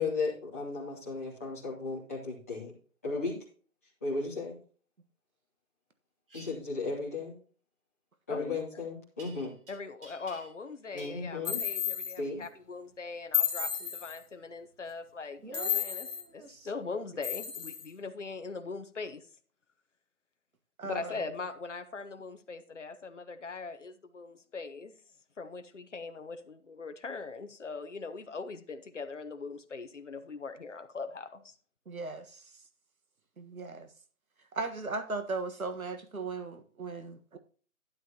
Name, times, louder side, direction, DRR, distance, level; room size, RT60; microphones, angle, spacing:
voice 1, 0.0-2.7 3.0-3.4 4.0-4.6 6.3-7.4 8.3-9.5 10.9-11.6 12.2-12.4, left 3 dB, 10° left, 1.9 m, -35 dB
sound 1, 6.3-6.5 9.2-9.7 10.0-10.7 11.0-11.2, right 2 dB, 35° right, 3.2 m, -51 dB
voice 2, 8.3-8.6 9.7-16.1 16.3-19.2 20.8-24.9 25.4-31.5, left 4 dB, 55° left, 1.0 m, -41 dB
sound 2, 11.4-12.2 13.3-14.2 15.5-16.2 17.2-17.9, left 9 dB, 35° left, 1.7 m, -32 dB
voice 3, 15.4-16.7 20.8-21.2 31.9-32.5 33.4-33.9 34.5-37.4, right 3 dB, 70° right, 1.6 m, -38 dB
12.0 x 9.0 x 2.9 m
figure-of-eight pair, 175°, 44 cm